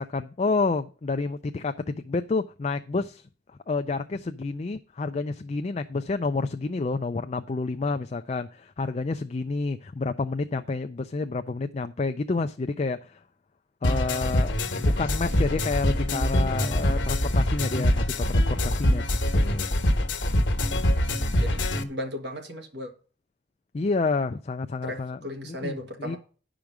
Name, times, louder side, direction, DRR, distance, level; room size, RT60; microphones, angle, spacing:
voice 1, 0.0-3.3 3.7-13.2 13.8-14.5 14.8-19.0 19.3-19.7 23.7-26.2, left 3 dB, 35° left, 0.4 m, -29 dB
sound 1, 13.8-21.8, left 1 dB, 80° left, 1.3 m, -24 dB
voice 2, 15.3-15.6 21.4-22.9 24.8-26.2, equal, 65° right, 1.7 m, -36 dB
10.5 x 5.1 x 6.0 m
head